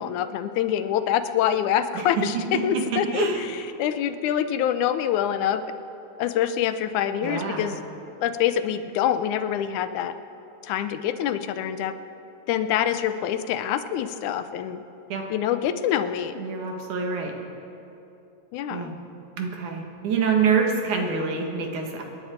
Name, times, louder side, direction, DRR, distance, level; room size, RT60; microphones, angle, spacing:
voice 1, 0.0-5.6 6.2-7.8 8.2-10.1 10.6-11.9 12.5-14.8 15.3-16.4 18.5-18.9, left 10 dB, 85° left, 10 dB, 2.1 m, -25 dB
voice 2, 2.9-3.4 7.2-7.7 15.1-15.2 16.4-17.3 18.7-18.9 19.3-22.0, right 5 dB, 80° right, 2 dB, 3.0 m, -26 dB
26.5 x 10.5 x 4.4 m, 2.9 s
omnidirectional pair, 3.4 m